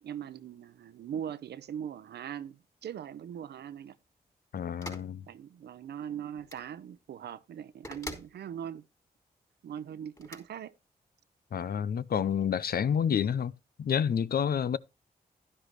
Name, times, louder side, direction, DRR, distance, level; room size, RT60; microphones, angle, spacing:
voice 1, 0.0-4.0 5.3-8.8 9.6-10.7, right 9 dB, 80° right, 0.7 m, -40 dB
voice 2, 4.5-5.2 11.5-13.5 13.8-14.8, left 8 dB, 65° left, 0.6 m, -29 dB
sound 1, 4.8-5.1 6.4-6.7 7.8-8.3 10.2-10.4, left 1 dB, 20° left, 4.4 m, -42 dB
11.5 x 11.0 x 3.1 m
supercardioid pair, 45°, 17 cm